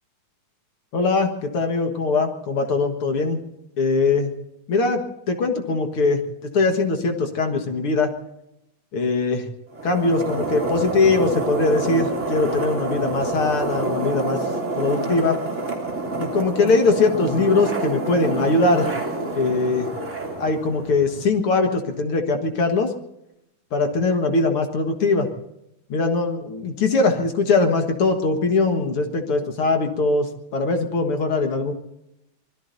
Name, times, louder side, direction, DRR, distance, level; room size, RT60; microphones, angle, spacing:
voice 1, 0.9-3.4 3.8-4.3 4.7-5.0 5.3-6.2 6.5-8.1 8.9-9.5 9.8-14.5 14.8-15.4 16.2-18.9 19.3-19.9 20.4-22.9 23.7-25.3 25.9-31.7, left 3 dB, 50° left, 5 dB, 2.1 m, -21 dB
sound 1, 9.7-21.3, right 2 dB, 20° right, 3.2 m, -27 dB
26.0 x 20.5 x 2.7 m, 0.84 s
omnidirectional pair, 3.7 m